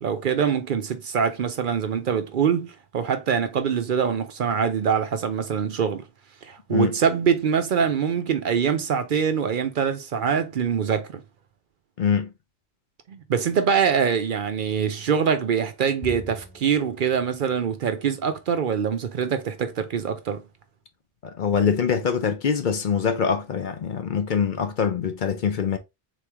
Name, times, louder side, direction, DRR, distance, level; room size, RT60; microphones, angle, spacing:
voice 1, 0.0-6.1 6.5-11.2 13.1-20.4, right 7 dB, 60° right, 0.7 m, -24 dB
voice 2, 12.0-12.3 21.2-25.8, left 6 dB, 55° left, 0.7 m, -24 dB
Bowed string instrument, 16.0-18.6, equal, 20° left, 0.7 m, -43 dB
3.9 x 3.1 x 3.4 m
omnidirectional pair, 1.1 m